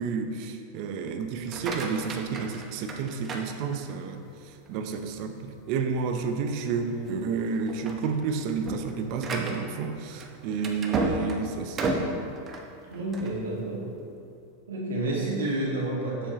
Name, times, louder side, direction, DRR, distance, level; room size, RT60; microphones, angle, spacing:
voice 1, 0.0-4.2 4.5-12.1, right 5 dB, 55° right, 6 dB, 0.6 m, -31 dB
sound 1, 1.3-4.2 4.7-5.1 5.6-5.7 6.1-6.2 6.9-7.2 7.5-13.4, right 2 dB, 30° right, 0.8 m, -33 dB
voice 2, 12.9-13.9 14.7-16.3, right 1 dB, 85° right, -4 dB, 1.6 m, -29 dB
7.1 x 6.9 x 2.9 m, 2.5 s
hypercardioid pair, 105°, 0 cm